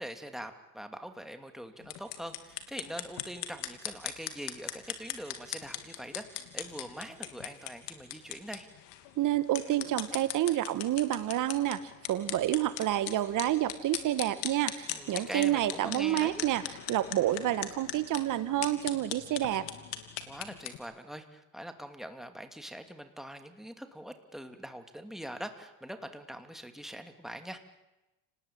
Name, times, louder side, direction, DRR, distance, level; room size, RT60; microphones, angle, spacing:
voice 1, 0.0-8.7 14.9-16.4 20.3-27.6, equal, ahead, 7 dB, 2.7 m, -43 dB
sound 1, 1.8-20.8, left 12 dB, 70° left, 3.0 m, -40 dB
voice 2, 9.2-11.8 12.1-16.6 16.9-19.7, right 13 dB, 50° right, 14 dB, 1.6 m, -29 dB
30.0 x 20.0 x 8.9 m, 1.0 s
supercardioid pair, 105°, 41 cm